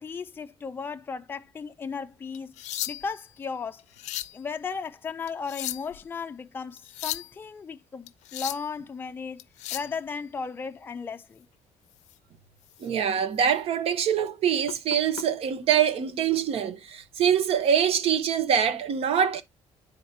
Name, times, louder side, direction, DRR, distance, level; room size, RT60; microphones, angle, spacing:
voice 1, 0.0-2.5 2.9-3.8 4.3-9.4 9.7-11.5, left 5 dB, 20° left, 0.4 m, -35 dB
sound 1, 2.3-3.2 3.8-4.4 5.3-6.0 6.8-7.3 8.1-8.7 9.4-9.9 12.0-12.1 12.7-12.9 13.3-13.5 14.7-15.2 16.3-16.5, left 15 dB, 85° left, 0.5 m, -36 dB
voice 2, 12.8-19.4, right 8 dB, 55° right, 1.0 m, -24 dB
9.7 x 3.9 x 2.8 m
cardioid pair, 160°, 12 cm